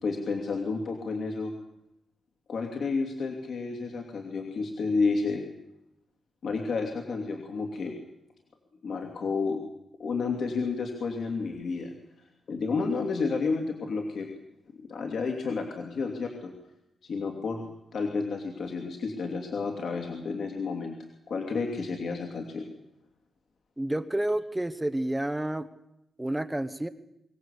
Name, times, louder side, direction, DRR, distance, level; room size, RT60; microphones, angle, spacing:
voice 1, 0.0-1.5 2.5-5.4 6.4-8.0 8.8-9.6 10.0-11.9 12.2-14.3 14.8-16.5 17.0-21.0 21.3-22.7, left 4 dB, 55° left, 2 dB, 2.9 m, -31 dB
voice 2, 23.8-25.7 26.2-26.9, right 1 dB, 10° right, 12 dB, 1.0 m, -29 dB
24.0 x 18.0 x 8.4 m, 0.84 s
wide cardioid pair, 180°, 0 cm